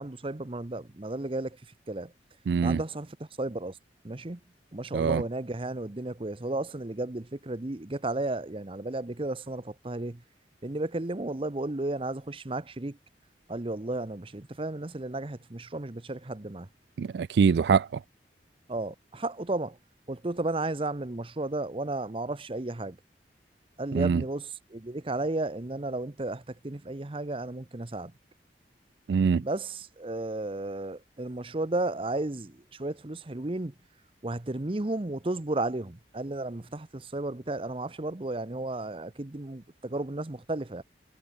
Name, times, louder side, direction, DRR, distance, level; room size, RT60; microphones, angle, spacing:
voice 1, 0.0-1.6 1.9-2.1 2.6-3.8 4.0-4.4 4.7-10.2 10.6-13.0 13.5-16.7 18.7-19.8 20.1-23.0 23.8-28.1 29.4-33.7 34.2-40.8, right 2 dB, 30° right, 0.8 m, -33 dB
voice 2, 2.5-2.8 4.9-5.2 17.0-17.9 23.9-24.2 29.1-29.4, right 6 dB, 70° right, 0.3 m, -23 dB
head